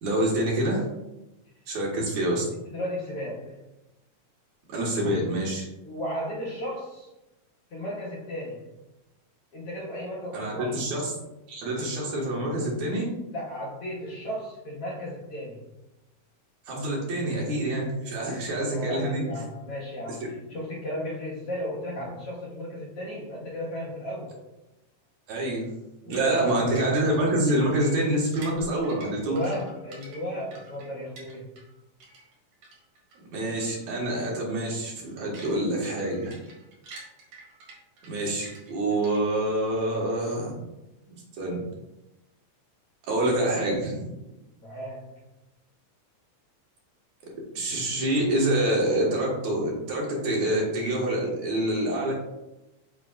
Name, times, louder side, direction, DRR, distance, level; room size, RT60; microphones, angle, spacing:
voice 1, 0.0-0.9 1.7-2.4 4.7-5.7 10.3-11.1 11.5-13.1 16.7-19.3 25.3-25.7 26.1-29.4 33.3-36.4 38.1-40.6 41.4-41.6 43.1-44.0 47.5-52.1, right 1 dB, 65° right, -3 dB, 2.8 m, -26 dB
voice 2, 2.6-3.6 5.8-7.1 7.7-8.7 9.5-10.8 13.3-15.6 18.6-24.3 26.0-26.7 28.9-31.6 44.6-45.2, equal, 55° left, -6 dB, 2.2 m, -35 dB
sound 1, 26.2-31.7 32.0-33.2 33.6-33.8 34.1-34.3 34.7-39.5, right 2 dB, 85° right, 3.5 m, -48 dB
7.3 x 6.8 x 2.4 m, 0.97 s
omnidirectional pair, 3.7 m